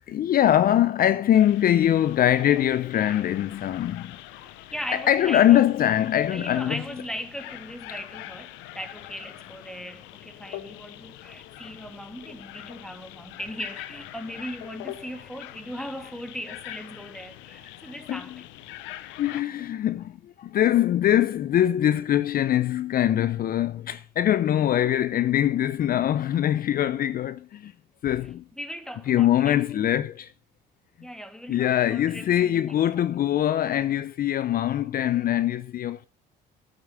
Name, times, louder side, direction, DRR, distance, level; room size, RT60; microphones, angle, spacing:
voice 1, 0.1-4.1 4.9-6.8 10.9-11.0 17.8-18.2 19.2-27.7 28.0-28.4 29.1-30.3 31.5-36.1, left 11 dB, 50° left, 0.7 m, -23 dB
sound 1, 1.3-19.4, left 14 dB, 75° left, 0.9 m, -43 dB
voice 2, 4.4-5.6 6.3-18.5 28.5-30.0 31.0-33.0, equal, 5° left, 2.4 m, -38 dB
9.5 x 7.7 x 8.4 m
supercardioid pair, 75°, 20 cm